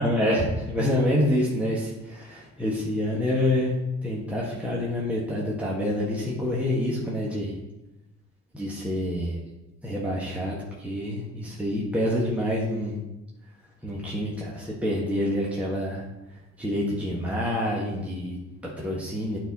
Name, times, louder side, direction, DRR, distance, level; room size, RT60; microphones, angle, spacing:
voice 1, 0.0-7.5 8.5-9.4 9.8-13.0 13.8-16.0 16.6-19.4, left 1 dB, 5° right, -5 dB, 1.5 m, -27 dB
9.1 x 4.4 x 4.2 m, 0.97 s
cardioid pair, 90°, 30 cm